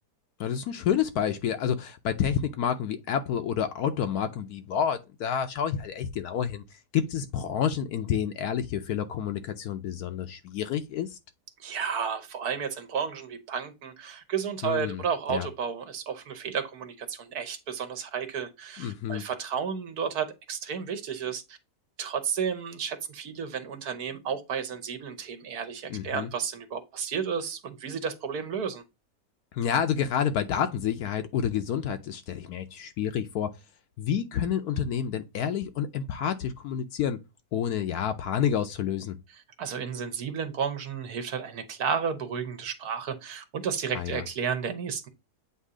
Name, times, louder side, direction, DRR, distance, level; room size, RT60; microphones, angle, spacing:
voice 1, 0.4-11.2 14.6-15.0 15.3-15.5 18.8-19.2 25.9-26.3 29.5-33.5 34.0-37.2 37.5-39.1 43.9-44.2, left 8 dB, 70° left, 1.0 m, -29 dB
voice 2, 11.6-21.6 22.0-28.8 39.6-45.1, right 7 dB, 65° right, 1.4 m, -32 dB
8.2 x 2.7 x 4.8 m
omnidirectional pair, 1.8 m